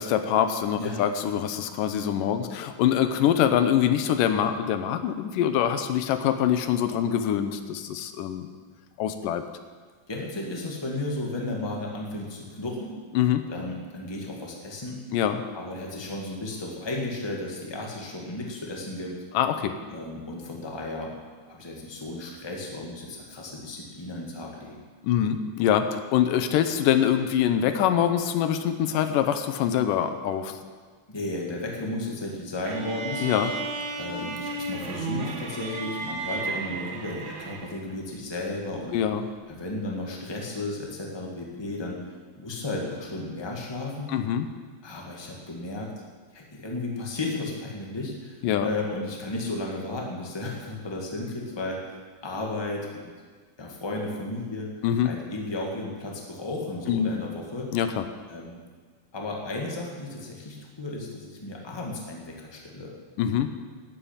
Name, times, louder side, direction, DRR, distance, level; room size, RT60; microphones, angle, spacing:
voice 1, 0.0-8.5 9.0-9.4 13.2-13.5 15.1-15.4 19.3-19.7 25.0-30.6 33.2-33.5 38.9-39.2 44.1-44.5 48.4-48.7 54.8-55.1 56.9-57.2 57.7-58.1 63.2-63.5, left 9 dB, 90° left, 9 dB, 2.5 m, -24 dB
voice 2, 10.1-12.9 13.5-15.0 15.5-19.2 19.9-21.2 21.4-24.9 31.1-33.3 34.0-39.0 39.5-42.0 42.4-44.2 44.8-45.9 46.3-51.8 52.2-53.1 53.6-54.7 55.0-57.7 58.3-58.6 59.1-62.9, left 2 dB, 10° left, -1 dB, 1.5 m, -34 dB
sound 1, 32.6-37.9, right 3 dB, 45° right, 1.8 m, -33 dB
11.5 x 9.0 x 8.9 m, 1.5 s
omnidirectional pair, 3.7 m